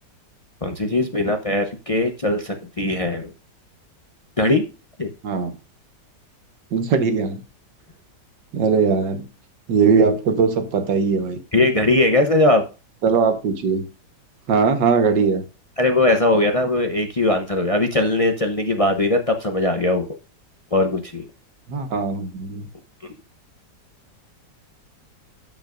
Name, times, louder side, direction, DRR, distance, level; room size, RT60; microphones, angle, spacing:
voice 1, 0.6-3.3 4.4-4.6 5.0-5.1 11.5-12.6 15.8-20.1 20.7-21.2, left 2 dB, 40° left, 0.5 m, -20 dB
voice 2, 6.7-7.4 8.5-9.3 9.7-11.4 13.0-13.9 14.5-15.4 21.7-22.7, right 5 dB, 75° right, 1.8 m, -20 dB
12.5 x 5.7 x 2.5 m
omnidirectional pair, 1.9 m